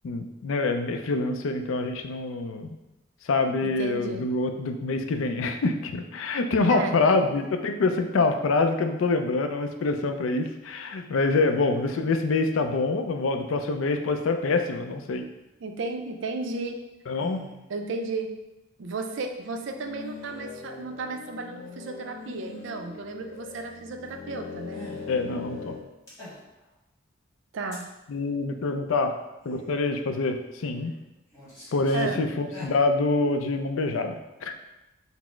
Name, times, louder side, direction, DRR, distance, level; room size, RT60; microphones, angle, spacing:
voice 1, 0.0-2.7 3.2-15.2 17.1-17.4 25.1-25.8 28.1-29.2 29.5-30.9 31.7-34.5, left 3 dB, 75° left, 7 dB, 0.4 m, -26 dB
voice 2, 3.6-4.3 6.7-7.3 15.6-16.8 17.7-18.3 18.8-24.8 27.5-27.9 31.9-32.3, right 3 dB, 65° right, 4 dB, 0.4 m, -34 dB
sound 1, 17.2-17.6 20.0-20.5 22.2-22.8 24.7-25.1 26.1-26.7 27.7-27.8 29.4-29.7 30.4-30.9 31.3-32.1 32.3-32.7, equal, 15° left, 1.3 m, -45 dB
sound 2, 19.6-25.8, left 5 dB, 40° left, 0.8 m, -41 dB
4.2 x 2.0 x 4.3 m, 0.96 s
head